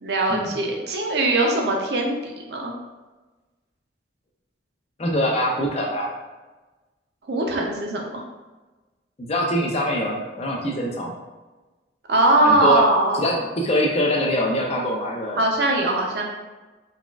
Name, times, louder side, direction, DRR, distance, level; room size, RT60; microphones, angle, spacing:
voice 1, 0.0-2.7 7.3-8.2 12.1-13.3 15.4-16.2, right 1 dB, 60° right, 0 dB, 0.5 m, -21 dB
voice 2, 5.0-6.1 9.2-11.1 12.4-12.8 13.1-15.4, equal, 35° left, -1 dB, 0.5 m, -23 dB
4.0 x 2.3 x 2.3 m, 1.2 s
head